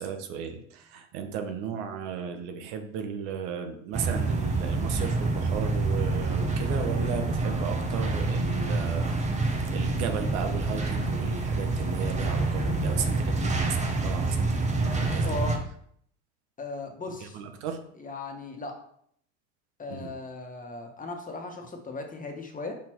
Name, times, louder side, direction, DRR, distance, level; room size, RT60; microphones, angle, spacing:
voice 1, 0.0-9.2 9.7-15.3 17.2-17.8 19.9-20.1, right 7 dB, 80° right, 6 dB, 1.2 m, -35 dB
sound 1, 3.9-15.6, right 3 dB, 20° right, 1.2 m, -27 dB
voice 2, 15.2-15.6 16.6-17.4 18.0-18.8 19.8-22.8, left 3 dB, 25° left, 3 dB, 1.3 m, -37 dB
6.0 x 4.2 x 4.5 m, 0.65 s
supercardioid pair, 105°, 35 cm